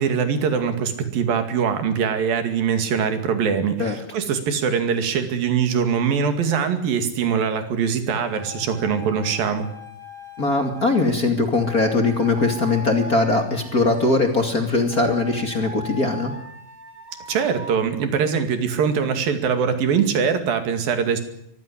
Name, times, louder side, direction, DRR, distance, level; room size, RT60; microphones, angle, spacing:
voice 1, 0.0-9.7 17.3-21.2, right 6 dB, 70° right, 8 dB, 4.0 m, -22 dB
sound 1, 8.2-11.1 11.5-14.2 14.9-17.8, left 2 dB, 50° right, 3.7 m, -40 dB
voice 2, 10.4-16.3, left 3 dB, 30° left, 5 dB, 2.3 m, -21 dB
23.5 x 15.0 x 10.0 m, 0.74 s
omnidirectional pair, 4.3 m